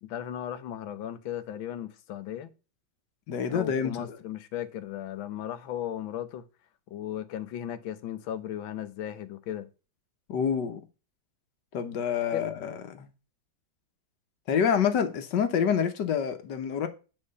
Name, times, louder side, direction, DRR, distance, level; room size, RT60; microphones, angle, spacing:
voice 1, 0.0-2.5 3.5-6.4 6.9-9.7 12.3-12.4, left 11 dB, 85° left, 1.6 m, -36 dB
voice 2, 3.3-4.2 10.3-10.8 11.7-13.1 14.5-16.9, left 7 dB, 65° left, 1.6 m, -27 dB
8.9 x 4.4 x 5.3 m
omnidirectional pair, 2.1 m